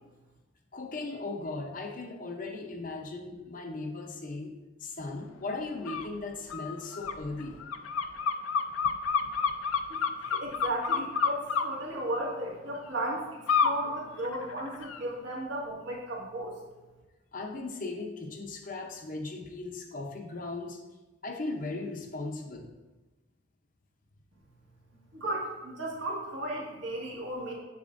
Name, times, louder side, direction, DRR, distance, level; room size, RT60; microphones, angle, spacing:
voice 1, 0.7-4.5 4.8-7.6 17.3-20.8 21.2-22.7, left 3 dB, 40° left, 2 dB, 0.7 m, -37 dB
sound 1, 5.8-6.1 6.5-11.6 13.5-13.8 14.2-15.0, left 6 dB, 85° left, 0.4 m, -29 dB
voice 2, 9.9-13.3 13.6-16.5 25.1-27.5, right 1 dB, 70° right, -3 dB, 1.8 m, -35 dB
7.3 x 6.9 x 2.6 m, 1.1 s
head